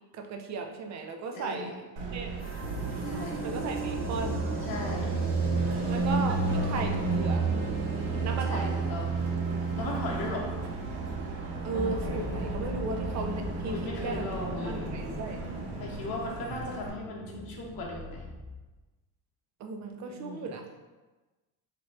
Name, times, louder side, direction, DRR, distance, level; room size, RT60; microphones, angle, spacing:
voice 1, 0.1-1.8 2.1-2.3 3.4-4.4 5.9-7.5 8.2-8.7 11.6-14.2 14.7-15.4 19.6-20.7, right 4 dB, 35° right, 4 dB, 0.5 m, -35 dB
voice 2, 1.3-1.8 3.0-3.4 4.7-5.1 8.5-9.1 9.7-10.5 13.7-14.9 15.8-18.2 20.1-20.6, left 2 dB, 45° left, -2 dB, 0.9 m, -37 dB
Car passing by, 2.0-16.9, right 3 dB, 60° right, 0.8 m, -32 dB
sound 1, 2.4-13.0, right 1 dB, 20° left, 0.7 m, -44 dB
sound 2, 11.7-18.7, left 1 dB, 5° right, 1.1 m, -39 dB
2.9 x 2.5 x 3.1 m, 1.2 s
supercardioid pair, 80°, 49 cm